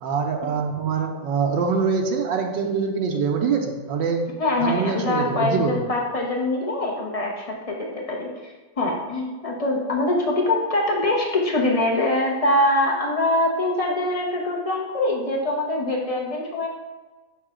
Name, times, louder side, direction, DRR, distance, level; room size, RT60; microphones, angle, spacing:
voice 1, 0.0-4.2 4.6-5.8, right 5 dB, 85° right, 2 dB, 1.4 m, -24 dB
voice 2, 4.4-16.7, left 1 dB, 50° left, -1 dB, 0.4 m, -23 dB
5.5 x 3.7 x 4.9 m, 1.2 s
omnidirectional pair, 1.9 m